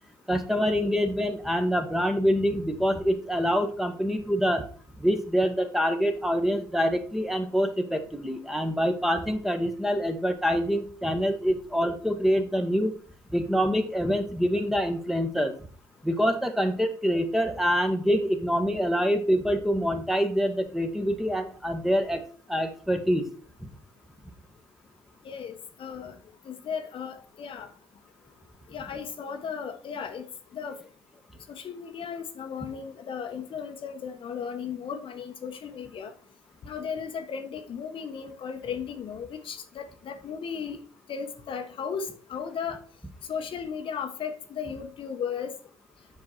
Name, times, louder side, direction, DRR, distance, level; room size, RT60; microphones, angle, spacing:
voice 1, 0.3-4.7 5.0-12.9 13.3-15.5 16.0-22.2 22.5-23.3, equal, ahead, 6 dB, 1.6 m, -25 dB
voice 2, 25.2-26.1 26.4-27.7 28.7-30.2 30.5-30.8 31.5-36.1 36.6-40.8 41.1-42.8 43.3-45.5, left 7 dB, 50° left, 6 dB, 1.1 m, -35 dB
7.5 x 6.0 x 4.6 m, 0.42 s
hypercardioid pair, 55°, 11 cm